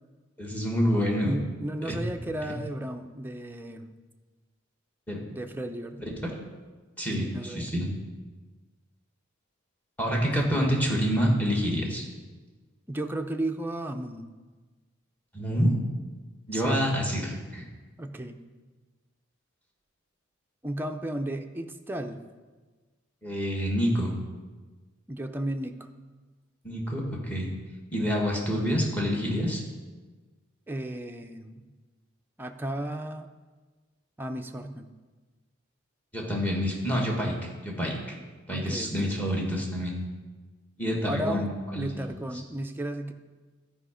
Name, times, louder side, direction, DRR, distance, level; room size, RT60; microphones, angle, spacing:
voice 1, 0.4-1.3 1.8-1.9 5.1-5.2 6.2-6.3 7.0-7.9 10.0-12.0 15.3-15.8 16.5-17.6 23.2-24.2 26.6-27.5 27.9-29.6 36.1-38.0 38.5-40.0 40.8-41.9, equal, 10° left, -1 dB, 1.5 m, -27 dB
voice 2, 1.2-3.9 5.3-6.0 7.2-7.7 10.3-10.5 12.9-14.3 16.5-16.9 18.0-18.4 20.6-22.2 25.1-25.8 30.7-31.7 32.4-33.3 34.2-34.9 38.5-39.2 41.0-43.1, right 1 dB, 10° right, 4 dB, 0.5 m, -34 dB
11.5 x 4.9 x 5.0 m, 1.3 s
head